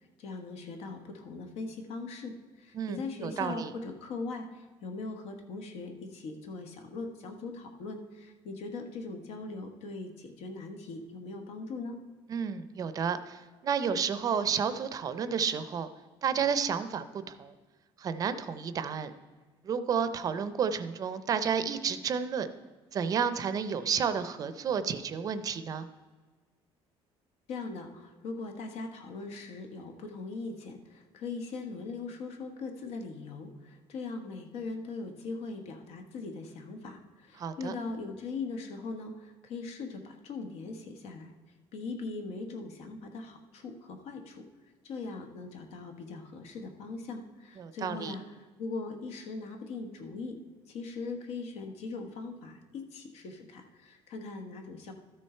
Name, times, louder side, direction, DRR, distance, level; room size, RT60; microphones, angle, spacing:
voice 1, 0.2-12.0 27.5-41.3 41.7-44.5 44.8-50.4 50.7-54.9, left 3 dB, 80° left, 5 dB, 1.4 m, -40 dB
voice 2, 2.7-3.7 12.3-15.9 16.2-17.5 18.0-19.1 19.6-22.5 22.9-25.9 37.4-37.7 47.6-48.1, right 7 dB, 35° right, 12 dB, 0.5 m, -31 dB
13.0 x 6.4 x 4.4 m, 1.4 s
cardioid pair, 160°, 10 cm